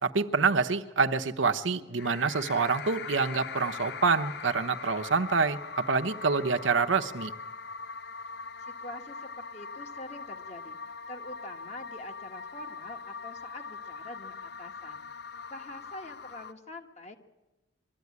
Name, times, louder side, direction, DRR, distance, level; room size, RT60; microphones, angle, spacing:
voice 1, 0.0-7.3, right 4 dB, 85° right, 7 dB, 0.9 m, -27 dB
sound 1, 2.0-16.5, left 5 dB, 55° left, 0.6 m, -41 dB
voice 2, 8.6-10.8 11.1-15.0 15.5-17.2, left 1 dB, 35° left, 5 dB, 1.5 m, -45 dB
21.5 x 13.5 x 9.6 m, 1.0 s
head